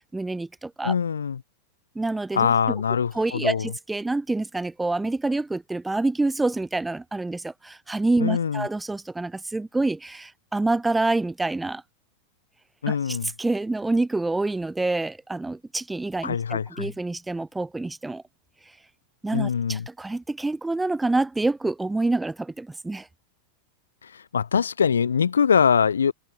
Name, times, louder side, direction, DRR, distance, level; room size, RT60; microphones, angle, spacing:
voice 1, 0.1-0.9 1.9-2.8 3.1-11.8 12.9-18.2 19.2-23.1, right 2 dB, 5° right, 1.2 m, -27 dB
voice 2, 0.8-1.4 2.3-3.7 8.2-8.7 12.8-13.3 16.2-16.9 19.3-19.9 24.0-26.1, left 7 dB, 70° left, 0.4 m, -23 dB
figure-of-eight pair, 90°, 0 cm